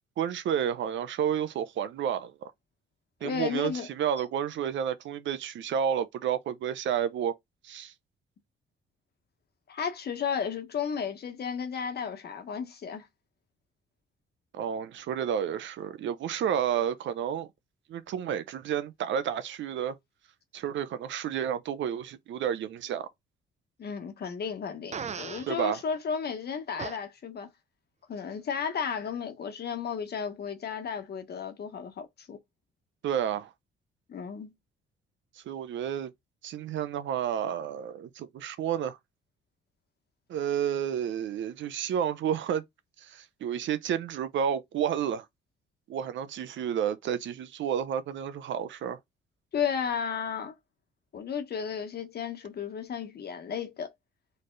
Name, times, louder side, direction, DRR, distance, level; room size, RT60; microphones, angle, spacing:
voice 1, 0.2-2.5 3.2-7.3 7.6-7.9 14.5-17.5 17.9-20.0 20.5-23.1 25.5-25.8 33.0-33.5 35.5-36.1 36.4-39.0 40.3-42.6 43.0-45.2 45.9-49.0, right 9 dB, 70° right, 0.7 m, -31 dB
voice 2, 3.2-3.9 9.7-13.1 23.8-27.5 28.1-32.4 34.1-34.5 49.5-50.5 51.1-53.9, left 7 dB, 55° left, 1.4 m, -33 dB
Fart, 24.9-25.5 26.8-27.0, right 6 dB, 35° right, 0.6 m, -36 dB
4.1 x 3.3 x 3.9 m
cardioid pair, 90°, 20 cm